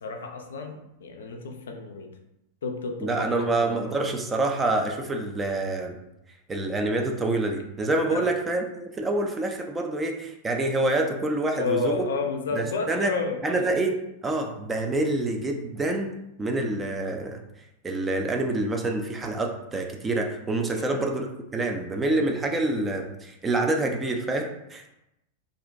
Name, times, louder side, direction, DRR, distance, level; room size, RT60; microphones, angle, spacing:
voice 1, 0.0-2.1 2.6-4.0 8.1-8.3 11.6-13.6 20.7-21.0, left 4 dB, 65° left, 4 dB, 0.3 m, -31 dB
voice 2, 3.0-6.0 6.5-12.0 12.5-13.1 13.4-14.0 14.2-16.1 16.4-17.4 17.8-24.9, right 2 dB, 15° right, 3 dB, 0.3 m, -27 dB
2.5 x 2.1 x 2.5 m, 0.84 s
figure-of-eight pair, 90°, 0 cm